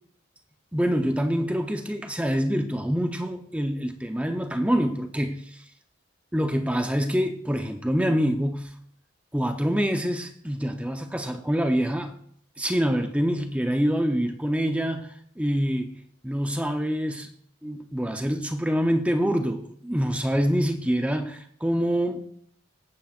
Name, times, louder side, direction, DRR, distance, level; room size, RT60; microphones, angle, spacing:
voice 1, 0.7-5.6 6.3-8.7 9.3-12.1 12.6-15.1 15.4-15.9 16.2-17.3 17.6-22.3, equal, 5° right, 0.7 m, -26 dB
17.5 x 8.9 x 2.5 m
head